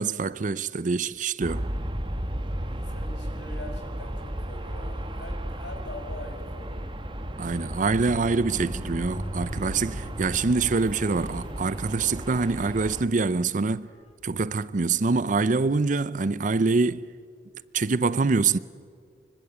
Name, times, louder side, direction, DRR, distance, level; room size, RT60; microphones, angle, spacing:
voice 1, 0.0-1.7 7.4-13.9 14.2-17.1 17.7-18.6, right 4 dB, 45° right, 0.6 m, -25 dB
Aircraft, 1.4-13.0, right 1 dB, 30° right, 1.5 m, -34 dB
voice 2, 2.4-6.8, left 1 dB, 75° left, 5.5 m, -43 dB
Squeak, 7.0-13.3 14.1-14.2, equal, 35° left, 2.4 m, -41 dB
24.5 x 24.5 x 8.2 m
head